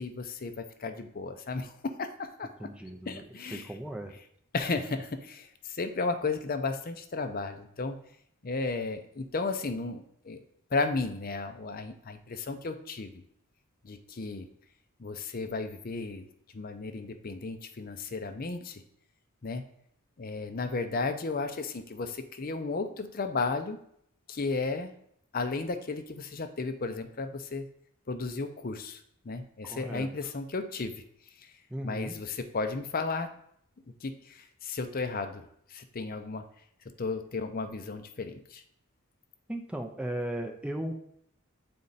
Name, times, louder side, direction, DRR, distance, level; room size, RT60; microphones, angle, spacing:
voice 1, 0.0-2.7 3.1-3.7 4.5-8.0 8.4-10.4 10.7-13.2 13.8-14.5 15.0-16.3 16.5-18.8 19.4-19.6 20.2-23.8 24.3-24.9 25.3-27.7 28.1-30.9 31.4-31.5 31.8-33.3 34.0-36.4 37.0-38.6, left 3 dB, 40° left, 8 dB, 0.6 m, -34 dB
voice 2, 2.6-3.2 3.5-4.2 29.6-30.1 31.7-32.2 39.5-41.0, right 1 dB, 5° right, 3 dB, 0.5 m, -36 dB
8.4 x 4.3 x 4.0 m, 0.69 s
head